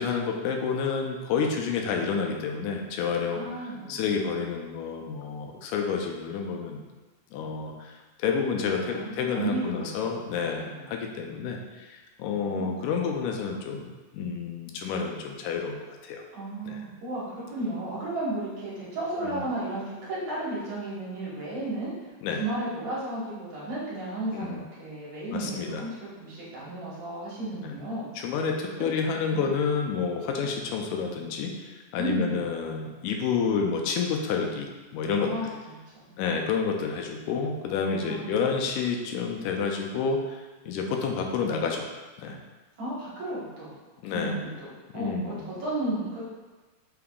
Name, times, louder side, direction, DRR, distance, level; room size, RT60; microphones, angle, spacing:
voice 1, 0.0-6.8 7.3-13.9 14.1-16.2 16.7-16.8 19.2-19.4 22.2-22.4 24.3-24.6 25.3-25.8 27.6-27.8 28.2-35.5 36.2-41.9 42.2-42.4 44.0-44.4 44.9-45.4, left 5 dB, 85° left, 2 dB, 2.0 m, -29 dB
voice 2, 3.3-4.0 8.7-10.1 10.5-10.8 12.3-12.9 16.3-21.9 22.4-28.1 28.8-28.9 29.3-29.4 32.0-32.4 35.2-35.5 36.0-36.1 38.0-38.3 42.8-43.7 44.1-46.3, right 2 dB, 70° right, -8 dB, 2.7 m, -33 dB
5.7 x 3.5 x 2.3 m, 1.2 s
omnidirectional pair, 3.5 m